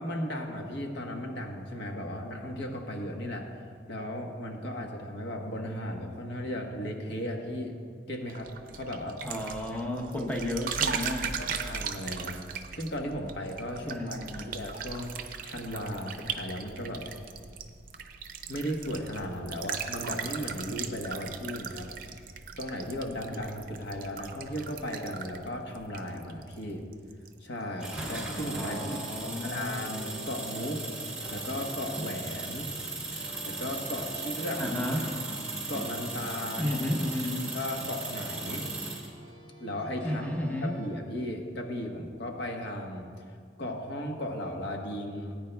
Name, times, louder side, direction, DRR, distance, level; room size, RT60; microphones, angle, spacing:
voice 1, 0.0-3.5 3.9-7.8 8.1-9.2 11.4-12.4 12.7-15.2 15.4-17.0 18.5-21.9 22.6-26.8 27.4-30.8 31.3-32.7 33.4-34.6 35.7-36.6 37.5-38.7 39.6-43.1 43.6-45.4, left 1 dB, 75° left, 2 dB, 1.2 m, -36 dB
sound 1, 8.3-26.6 26.9-27.3, right 6 dB, 50° right, 0.6 m, -38 dB
voice 2, 9.2-11.3 13.8-14.5 28.6-29.7 34.6-35.1 36.6-37.5 40.0-40.7, left 1 dB, 10° left, 0 dB, 0.9 m, -32 dB
sound 2, 27.8-39.1, right 2 dB, 5° right, 1.5 m, -37 dB
sound 3, 29.1-40.9, equal, 45° left, 2.7 m, -48 dB
18.0 x 9.3 x 2.3 m, 2.1 s
head